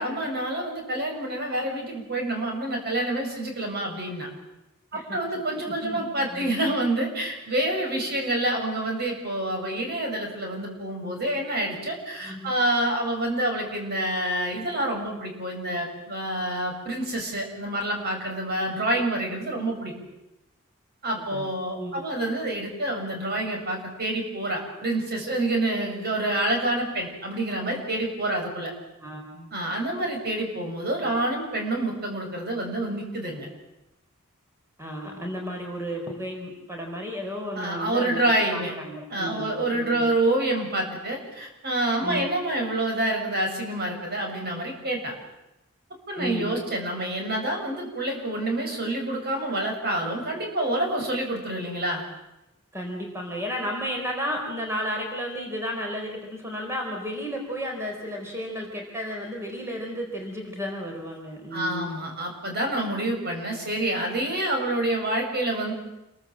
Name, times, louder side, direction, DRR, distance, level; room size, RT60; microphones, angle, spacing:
voice 1, 0.0-4.3 4.9-19.9 21.0-28.7 29.5-33.5 37.5-38.7 39.1-45.1 46.1-52.0 61.5-65.7, right 1 dB, 50° right, 2 dB, 6.7 m, -27 dB
voice 2, 5.8-6.6 12.2-12.5 21.3-21.4 21.7-22.1 29.0-29.5 34.8-40.0 42.0-42.3 46.2-46.6 52.7-61.9, equal, 15° right, 1 dB, 4.3 m, -33 dB
28.5 x 23.0 x 7.6 m, 0.93 s
head